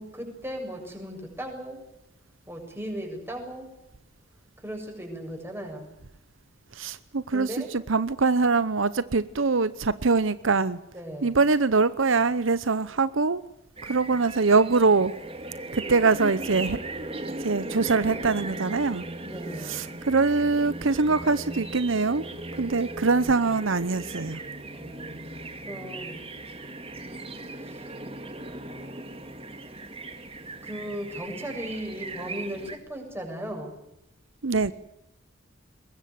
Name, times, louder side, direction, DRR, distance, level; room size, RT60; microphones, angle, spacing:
voice 1, 0.0-1.8 2.5-3.7 4.6-6.0 7.3-7.7 10.9-11.4 19.3-20.0 24.7-26.2 27.6-27.9 30.6-33.8, equal, 10° right, 7.3 m, -37 dB
voice 2, 6.7-10.8 11.2-13.4 13.8-15.1 15.7-16.8 17.4-19.0 19.6-22.2 22.6-24.4 34.4-34.7, right 4 dB, 70° right, 0.8 m, -23 dB
sound 1, 13.8-32.8, right 2 dB, 30° right, 2.4 m, -38 dB
23.5 x 20.5 x 9.3 m
head